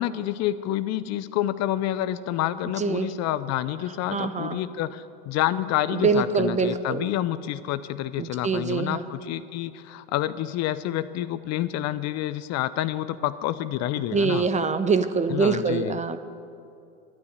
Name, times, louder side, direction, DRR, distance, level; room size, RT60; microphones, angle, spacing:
voice 1, 0.0-14.5 15.3-16.0, left 13 dB, 45° left, 14 dB, 0.6 m, -28 dB
voice 2, 4.1-4.6 6.0-7.0 8.2-9.0 14.1-16.2, right 5 dB, 20° right, 11 dB, 0.8 m, -24 dB
12.0 x 9.6 x 9.3 m, 2.6 s
hypercardioid pair, 100°, 38 cm